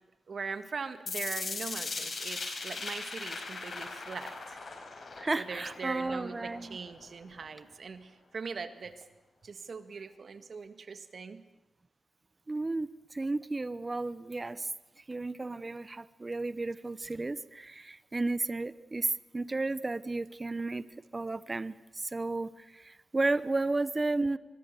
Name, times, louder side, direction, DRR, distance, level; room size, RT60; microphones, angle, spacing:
voice 1, 0.3-4.6 5.4-9.0 9.4-11.4, right 5 dB, 60° right, 10 dB, 1.8 m, -41 dB
sound 1, 1.1-7.0, left 4 dB, 60° left, 5.3 m, -39 dB
voice 2, 5.2-6.8 12.5-14.7 15.1-20.8 21.1-24.4, right 2 dB, 30° right, 16 dB, 0.9 m, -33 dB
24.5 x 23.0 x 6.8 m, 1.0 s
cardioid pair, 70°, 0 cm